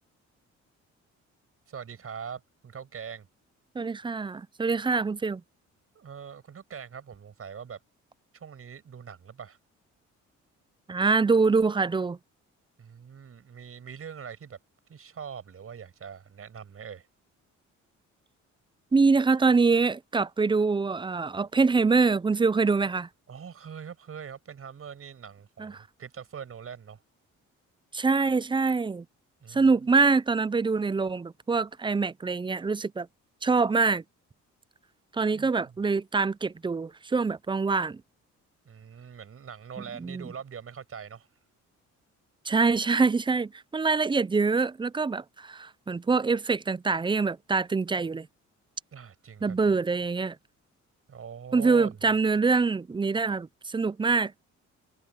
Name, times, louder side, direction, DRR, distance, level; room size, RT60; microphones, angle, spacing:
voice 1, 1.7-3.3 5.9-7.8 8.3-9.6 12.8-14.6 14.9-17.1 23.3-27.0 29.4-29.8 35.3-35.8 38.6-41.3 48.9-49.8 51.1-52.0, right 7 dB, 50° right, 6.1 m, -43 dB
voice 2, 3.8-5.4 10.9-12.2 18.9-23.1 25.6-25.8 27.9-29.0 29.5-33.1 33.4-34.0 35.1-38.0 40.0-40.2 42.5-48.3 49.4-50.4 51.5-54.3, right 4 dB, 15° right, 0.5 m, -25 dB
cardioid pair, 90°, 30 cm